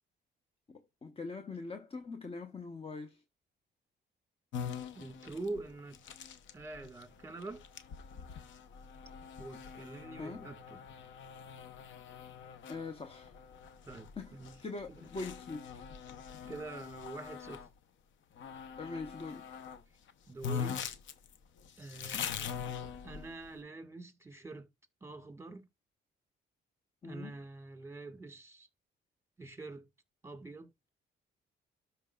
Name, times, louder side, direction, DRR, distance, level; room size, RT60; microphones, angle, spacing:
voice 1, 0.7-3.2 10.2-10.4 12.7-13.3 14.2-14.4 14.6-15.6 18.8-19.5 27.0-27.3, left 3 dB, 30° left, 0.9 m, -42 dB
sound 1, 4.5-17.7 18.4-19.8 20.1-20.2 20.4-23.5, left 7 dB, 70° left, 0.8 m, -43 dB
voice 2, 4.9-6.0 6.5-7.6 9.4-10.8 13.9-14.5 14.9-15.1 16.5-17.6 20.3-20.8 21.8-22.6 23.0-24.7 25.0-25.7 27.0-28.7 29.4-29.9 30.2-30.7, right 2 dB, 15° right, 1.7 m, -45 dB
13.0 x 4.6 x 2.3 m
cardioid pair, 90°, 20 cm